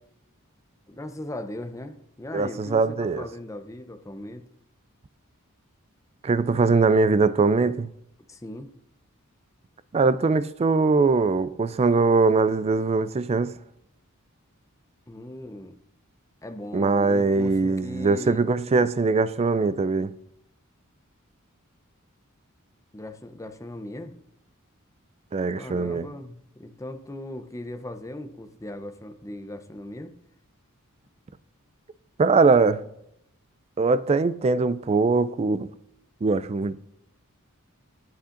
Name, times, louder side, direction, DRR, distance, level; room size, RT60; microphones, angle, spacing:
voice 1, 0.9-4.5 8.3-8.7 15.1-15.8 16.4-18.4 22.9-24.2 25.6-30.1, left 1 dB, 15° left, 0.6 m, -38 dB
voice 2, 2.3-3.3 6.2-7.9 9.9-13.6 16.7-20.1 25.3-26.1 32.2-32.8 33.8-35.7 36.2-36.8, right 4 dB, 30° right, 0.3 m, -21 dB
12.5 x 8.5 x 2.5 m
head